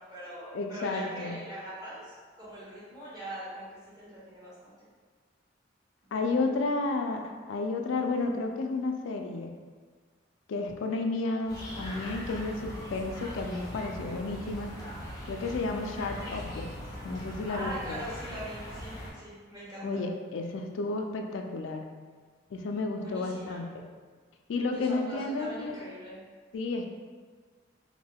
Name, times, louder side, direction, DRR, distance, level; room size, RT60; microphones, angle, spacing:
voice 1, 0.0-4.7 17.5-20.0 22.9-23.6 24.7-26.2, right 1 dB, 20° right, -11 dB, 1.0 m, -42 dB
voice 2, 0.5-1.4 6.1-9.5 10.5-14.7 15.3-16.7 17.0-18.0 19.8-21.9 22.5-23.6 24.5-25.7 26.5-26.9, left 3 dB, 80° left, 3 dB, 0.3 m, -32 dB
sound 1, 11.5-19.1, equal, 20° left, 0.5 m, -41 dB
2.5 x 2.2 x 3.3 m, 1.5 s
head